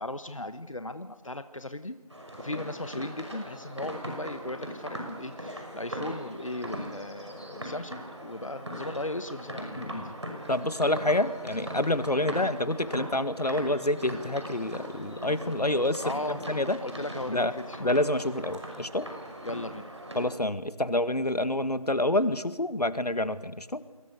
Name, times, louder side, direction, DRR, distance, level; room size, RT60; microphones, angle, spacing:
voice 1, 0.0-2.0 2.4-9.9 12.2-12.4 16.0-16.4 16.8-17.8 19.4-19.9, left 1 dB, 55° left, 10 dB, 1.2 m, -37 dB
sound 1, 2.1-20.3, right 1 dB, 45° right, 6.1 m, -40 dB
voice 2, 9.8-10.2 10.5-16.8 17.3-17.5 17.8-19.1 20.2-23.8, left 1 dB, 85° left, 12 dB, 1.8 m, -28 dB
29.5 x 23.0 x 6.8 m, 1.1 s
figure-of-eight pair, 175°, 20 cm